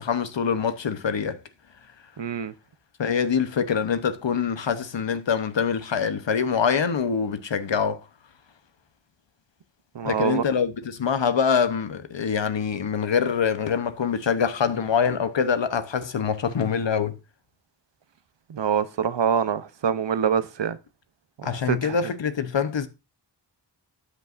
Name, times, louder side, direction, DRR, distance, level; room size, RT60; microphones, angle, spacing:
voice 1, 0.0-1.4 3.0-8.0 10.0-17.2 21.4-22.9, left 6 dB, 80° left, 0.9 m, -24 dB
voice 2, 2.2-2.5 10.0-10.4 18.5-20.8 21.7-21.9, right 7 dB, 75° right, 0.8 m, -25 dB
12.5 x 8.3 x 2.5 m
wide cardioid pair, 55°, 43 cm